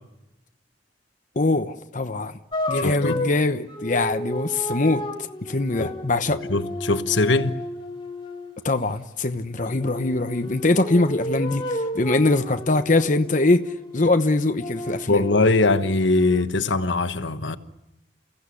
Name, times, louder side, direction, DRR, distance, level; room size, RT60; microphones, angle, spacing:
voice 1, 1.4-2.4 2.7-5.0 5.4-6.4 8.6-15.2, left 2 dB, 45° left, 1.0 m, -22 dB
sound 1, 2.5-8.6 9.7-14.1 14.6-16.4, left 1 dB, 30° left, 2.7 m, -32 dB
voice 2, 2.7-3.2 5.8-5.9 6.5-7.6 15.1-17.6, left 2 dB, 80° left, 1.2 m, -21 dB
29.0 x 16.0 x 9.8 m
head